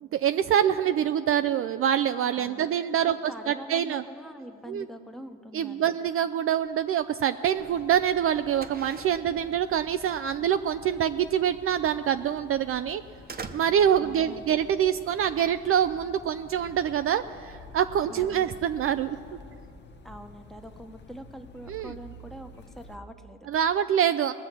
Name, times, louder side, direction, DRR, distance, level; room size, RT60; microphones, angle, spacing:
voice 1, 0.1-4.0 4.7-4.9 5.5-13.0 13.5-19.2 21.7-21.9 23.5-24.3, right 9 dB, 45° right, 11 dB, 0.4 m, -25 dB
voice 2, 2.3-2.7 3.0-6.0 14.0-14.6 18.1-18.5 20.0-23.5, equal, ahead, 6 dB, 1.0 m, -44 dB
sound 1, 6.5-17.1, right 4 dB, 30° right, 0.9 m, -48 dB
sound 2, 7.6-23.0, left 2 dB, 35° left, 0.9 m, -49 dB
20.0 x 6.9 x 6.1 m, 2.5 s
supercardioid pair, 80°, 30 cm